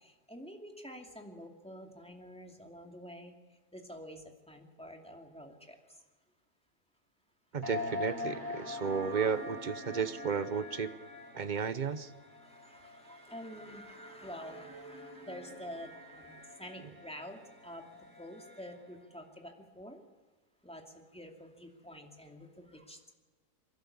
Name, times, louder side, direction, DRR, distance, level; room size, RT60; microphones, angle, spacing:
voice 1, 0.0-3.3 3.7-5.8 8.9-9.2 12.4-17.8 18.2-20.0 20.6-23.1, equal, 5° left, 2 dB, 2.5 m, -48 dB
voice 2, 7.5-10.9 11.3-12.1, right 6 dB, 40° right, 12 dB, 0.7 m, -33 dB
sound 1, 7.6-19.0, left 2 dB, 15° right, 3.2 m, -44 dB
27.5 x 12.0 x 8.6 m, 1.3 s
omnidirectional pair, 1.7 m